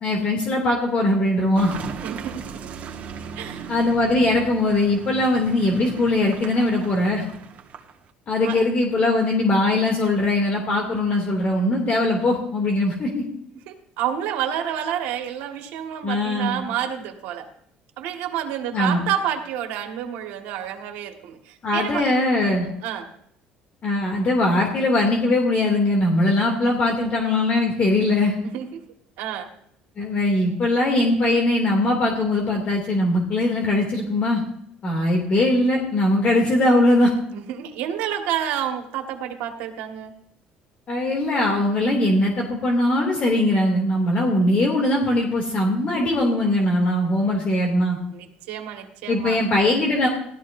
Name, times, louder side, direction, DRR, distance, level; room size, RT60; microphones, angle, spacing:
voice 1, 0.0-1.7 3.7-7.2 8.3-13.2 16.0-16.6 18.7-19.0 21.6-22.7 23.8-28.3 30.0-34.4 34.8-37.1 40.9-48.0 49.1-50.1, left 1 dB, 40° left, 0 dB, 2.7 m, -21 dB
Car passing by / Engine, 1.6-8.1, right 6 dB, 50° right, 1.7 m, -38 dB
voice 2, 2.0-2.7 3.4-3.7 8.4-8.6 13.7-17.5 18.0-22.2 22.8-23.1 28.4-28.8 29.2-29.5 37.3-40.1 48.1-49.4, right 10 dB, 85° right, 4 dB, 1.9 m, -29 dB
17.5 x 13.0 x 2.7 m, 0.72 s
cardioid pair, 110°, 3 cm